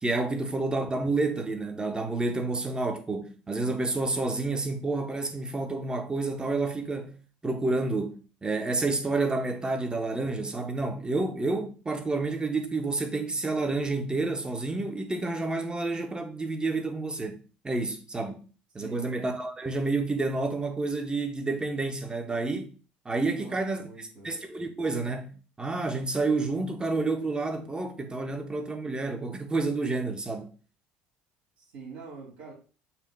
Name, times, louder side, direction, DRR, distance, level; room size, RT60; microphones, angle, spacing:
voice 1, 0.0-7.2 7.4-17.4 17.6-18.4 18.7-22.7 23.0-23.9 24.2-30.5, right 3 dB, 20° right, 1.4 m, -29 dB
voice 2, 18.8-19.1 23.4-24.3 31.6-32.5, right 4 dB, 80° right, 3.9 m, -45 dB
7.3 x 2.9 x 5.5 m
supercardioid pair, 80°, 4 cm